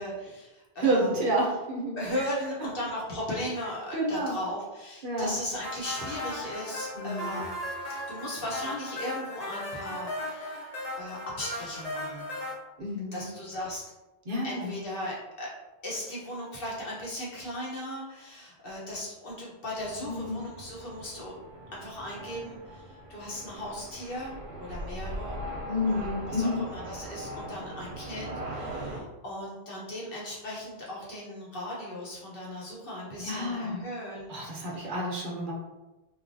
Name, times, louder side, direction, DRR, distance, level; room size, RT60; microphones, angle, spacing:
voice 1, 0.0-1.3 2.0-10.6 11.0-12.3 13.1-13.8 14.4-15.5 15.8-21.3 21.7-24.3 24.6-25.4 25.9-34.3 34.7-34.8, left 1 dB, 65° left, -5 dB, 1.0 m, -37 dB
voice 2, 0.8-2.0 2.6-2.7 3.9-4.4 5.0-5.4 6.9-7.3 12.8-13.3 14.3-14.8 20.0-20.4 25.7-26.7 33.2-33.8 34.3-35.5, equal, 55° right, -3 dB, 0.9 m, -29 dB
sound 1, 5.6-12.5, left 1 dB, 40° left, 0.8 m, -37 dB
sound 2, 19.8-29.0, right 1 dB, 90° right, 0.9 m, -40 dB
3.2 x 2.2 x 2.6 m, 1.1 s
omnidirectional pair, 1.1 m